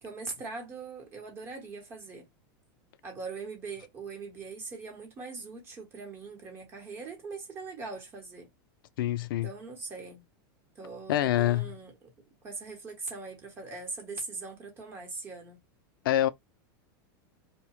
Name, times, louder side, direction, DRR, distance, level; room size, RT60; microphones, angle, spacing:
voice 1, 0.0-2.3 3.0-8.5 9.4-10.2 10.8-11.9 12.4-15.6, right 4 dB, 20° right, 0.9 m, -41 dB
voice 2, 9.0-9.5 11.1-11.7 16.0-16.3, left 13 dB, 70° left, 0.4 m, -25 dB
2.8 x 2.0 x 2.9 m
supercardioid pair, 175°, 12 cm